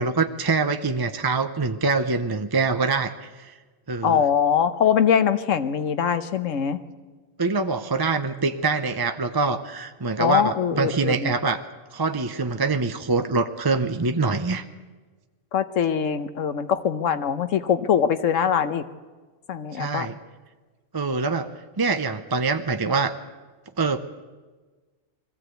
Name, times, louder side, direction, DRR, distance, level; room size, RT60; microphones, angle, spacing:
voice 1, 0.0-3.5 3.9-4.2 7.4-11.6 11.9-14.6 19.7-20.2 20.9-21.5 21.8-23.1 23.8-24.0, right 4 dB, 25° right, 8 dB, 0.5 m, -24 dB
voice 2, 4.0-6.8 10.2-11.3 15.5-18.8 19.5-20.1, left 8 dB, 75° left, 11 dB, 1.3 m, -22 dB
21.5 x 15.5 x 8.1 m, 1.3 s
omnidirectional pair, 1.4 m